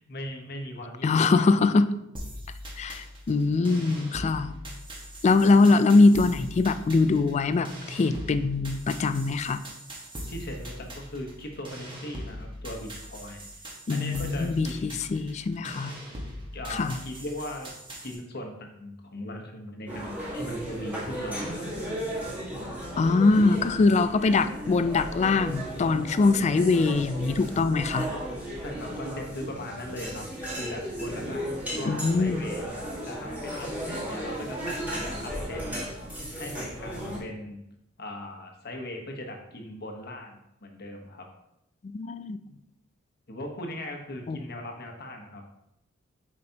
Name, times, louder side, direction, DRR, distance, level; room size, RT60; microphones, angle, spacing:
voice 1, 0.0-1.5 10.3-15.1 16.5-17.7 18.0-21.7 28.6-32.6 33.0-35.9 36.3-37.6 38.0-41.3 43.3-45.4, left 1 dB, 55° left, 2 dB, 1.1 m, -39 dB
voice 2, 1.0-1.9 2.8-4.6 5.2-9.6 13.9-15.9 16.7-17.0 23.0-28.1 31.9-32.5 41.8-42.4 44.3-44.4, left 3 dB, 35° left, 12 dB, 0.3 m, -23 dB
sound 1, 2.1-18.1, equal, 25° right, 1.3 m, -41 dB
sound 2, 19.9-37.2, equal, 10° right, 1.7 m, -35 dB
7.9 x 5.1 x 2.9 m, 0.83 s
head